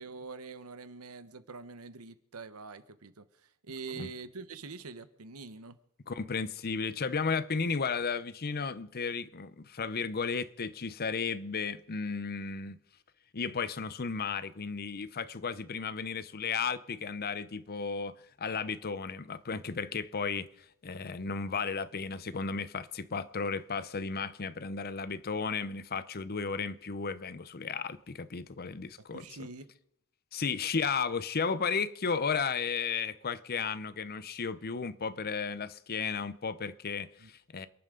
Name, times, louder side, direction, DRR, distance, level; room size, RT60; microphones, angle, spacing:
voice 1, 0.0-5.8 23.1-23.2 29.1-29.7 37.2-37.3, right 4 dB, 75° right, 1.0 m, -45 dB
voice 2, 6.1-12.8 13.3-20.5 20.8-29.2 30.3-37.7, left 5 dB, 45° left, 0.7 m, -34 dB
28.0 x 11.0 x 3.9 m
head